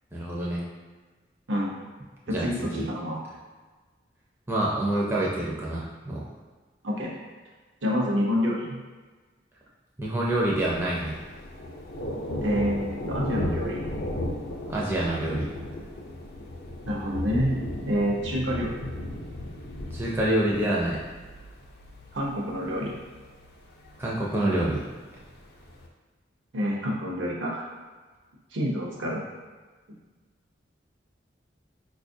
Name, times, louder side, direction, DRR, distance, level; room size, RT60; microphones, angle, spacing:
voice 1, 0.1-0.6 2.3-2.9 4.5-6.2 10.0-11.1 14.7-15.5 19.9-21.0 24.0-24.8, right 1 dB, 10° right, -5 dB, 0.4 m, -27 dB
voice 2, 2.3-3.2 6.8-7.2 7.8-8.8 12.4-13.8 16.9-17.5 17.9-18.8 22.1-22.9 26.5-27.7 28.5-29.2, equal, 80° right, -2 dB, 0.6 m, -27 dB
Thunder, 10.3-25.9, left 1 dB, 55° left, 0.4 m, -36 dB
4.3 x 2.3 x 2.6 m, 1.4 s
head